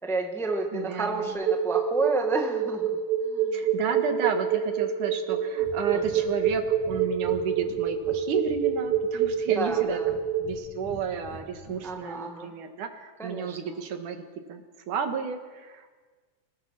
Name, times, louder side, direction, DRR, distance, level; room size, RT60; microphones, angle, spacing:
voice 1, 0.0-3.0 3.3-3.5 5.9-6.0 9.5-10.1 11.8-12.5 13.2-13.6, right 3 dB, ahead, 2 dB, 1.2 m, -30 dB
voice 2, 0.7-1.4 3.5-14.2 14.5-14.6 14.9-15.9, right 6 dB, 85° right, 6 dB, 3.2 m, -32 dB
sound 1, 1.3-10.4, right 10 dB, 30° right, 3.2 m, -26 dB
Breathing, 5.6-5.8 6.0-6.2 6.4-6.6 6.8-8.2 8.4-9.4 9.7-10.6 10.8-11.7, left 1 dB, 70° left, 6.8 m, -45 dB
26.5 x 18.0 x 6.0 m, 1.4 s
omnidirectional pair, 3.5 m